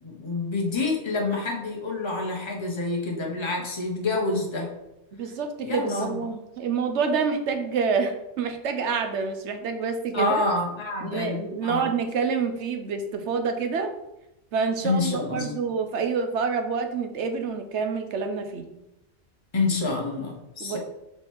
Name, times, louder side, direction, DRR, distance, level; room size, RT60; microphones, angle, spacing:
voice 1, 0.0-4.7 5.6-6.3 10.1-11.9 14.8-15.6 19.5-20.8, left 3 dB, 25° left, -1 dB, 1.1 m, -27 dB
voice 2, 5.1-10.3 11.0-13.9 14.5-18.7 20.6-20.8, right 5 dB, 80° right, 7 dB, 1.1 m, -27 dB
5.2 x 4.5 x 4.6 m, 0.90 s
omnidirectional pair, 1.2 m